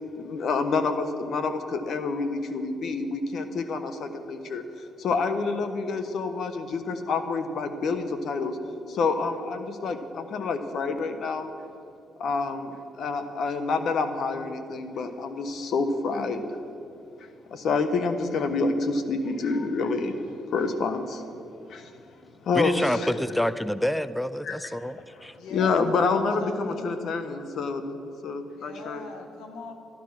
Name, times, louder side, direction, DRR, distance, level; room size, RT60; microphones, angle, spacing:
voice 1, 0.2-4.6 5.0-8.6 8.9-11.5 12.2-16.4 17.2-21.3 21.7-23.1 24.4-24.6 25.5-29.0, left 4 dB, 65° left, 8 dB, 1.2 m, -28 dB
voice 2, 22.5-25.3, left 1 dB, 5° left, 14 dB, 0.4 m, -27 dB
voice 3, 25.4-27.1 28.5-29.7, left 3 dB, 90° left, 4 dB, 1.7 m, -40 dB
13.0 x 12.0 x 6.0 m, 2.6 s
cardioid pair, 90°, 0 cm